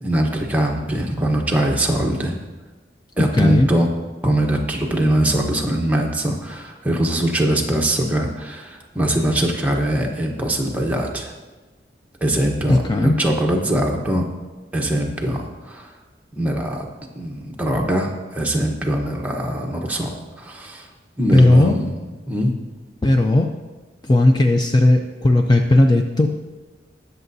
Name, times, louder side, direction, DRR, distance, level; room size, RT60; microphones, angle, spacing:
voice 1, 0.0-2.4 3.2-3.9 4.2-11.3 12.2-14.2 14.7-15.9 16.3-16.9 17.1-20.9 21.2-21.9 22.3-22.5, right 1 dB, 10° right, 0 dB, 1.0 m, -22 dB
voice 2, 3.2-3.7 12.7-13.1 21.3-21.8 23.0-23.5 24.0-26.3, left 1 dB, 25° left, 4 dB, 0.5 m, -15 dB
20.0 x 6.8 x 2.7 m, 1.3 s
head